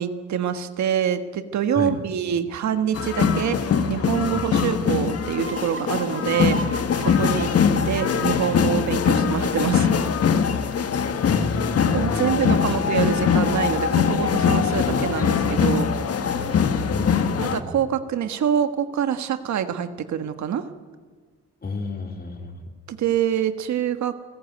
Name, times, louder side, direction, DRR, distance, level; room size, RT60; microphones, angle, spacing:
voice 1, 0.0-3.6 3.9-6.6 7.0-7.5 7.8-10.0 11.9-15.9 17.4-20.6 22.9-24.1, right 9 dB, 70° right, 9 dB, 1.6 m, -25 dB
sound 1, 2.9-17.6, left 6 dB, 50° left, 1.6 m, -22 dB
sound 2, 5.3-10.8, right 4 dB, 45° right, 1.5 m, -39 dB
voice 2, 11.3-12.4 14.6-14.8 16.8-17.7 21.6-22.6, left 3 dB, 30° left, 4 dB, 3.7 m, -31 dB
29.0 x 15.0 x 9.3 m, 1.5 s
cardioid pair, 90°, 30 cm